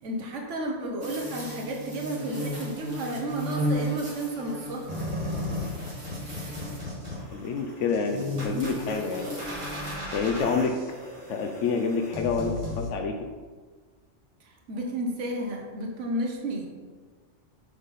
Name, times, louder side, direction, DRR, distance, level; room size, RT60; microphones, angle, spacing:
voice 1, 0.0-4.9 14.4-16.7, right 1 dB, 85° right, 1 dB, 1.2 m, -32 dB
sound 1, 1.0-7.0 8.1-10.0, equal, 65° right, 2.0 m, -34 dB
sound 2, 4.9-12.9, left 1 dB, 25° right, 2.1 m, -36 dB
voice 2, 7.3-9.3 10.1-10.7 11.3-13.1, left 5 dB, 85° left, 4 dB, 1.0 m, -27 dB
6.5 x 5.4 x 4.1 m, 1.4 s
omnidirectional pair, 1.2 m